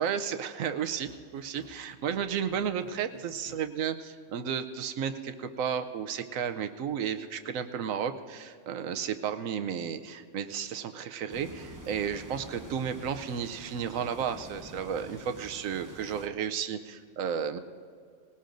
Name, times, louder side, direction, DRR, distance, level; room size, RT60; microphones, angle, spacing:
voice 1, 0.0-17.6, right 7 dB, 80° right, 9 dB, 1.1 m, -33 dB
sound 1, 0.9-3.7, left 2 dB, 45° left, 1.4 m, -53 dB
sound 2, 11.3-16.3, right 1 dB, 20° right, 0.6 m, -47 dB
20.0 x 18.0 x 2.6 m, 2.1 s
omnidirectional pair, 1.4 m